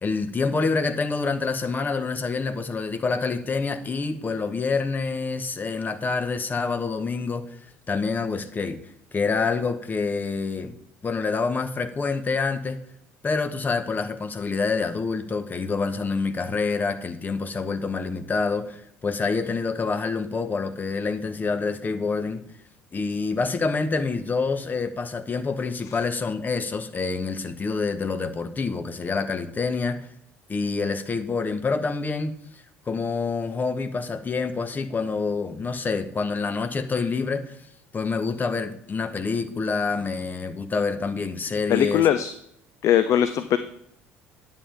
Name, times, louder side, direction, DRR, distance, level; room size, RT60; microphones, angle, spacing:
voice 1, 0.0-7.6 7.9-8.8 9.1-10.8 11.0-12.8 13.2-22.4 22.9-30.1 30.5-32.3 32.9-37.6 37.9-42.1, left 4 dB, 25° left, 10 dB, 1.0 m, -27 dB
voice 2, 41.7-42.3 42.8-43.6, left 10 dB, 50° left, 12 dB, 0.5 m, -20 dB
9.9 x 7.4 x 3.4 m, 0.70 s
figure-of-eight pair, 60°, 7 cm